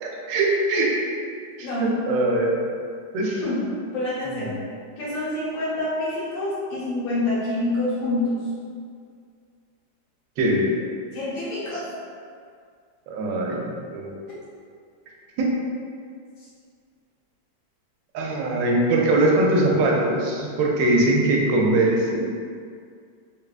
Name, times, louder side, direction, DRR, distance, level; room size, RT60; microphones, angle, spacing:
voice 1, 0.0-1.1 1.6-2.6 3.1-3.4 10.4-10.6 13.1-14.2 15.4-15.5 18.1-22.2, right 2 dB, 80° right, -2 dB, 1.3 m, -21 dB
voice 2, 3.9-4.5 5.0-8.3 11.1-11.8, left 2 dB, 85° left, -9 dB, 1.7 m, -26 dB
3.5 x 2.2 x 2.3 m, 2.2 s
omnidirectional pair, 2.0 m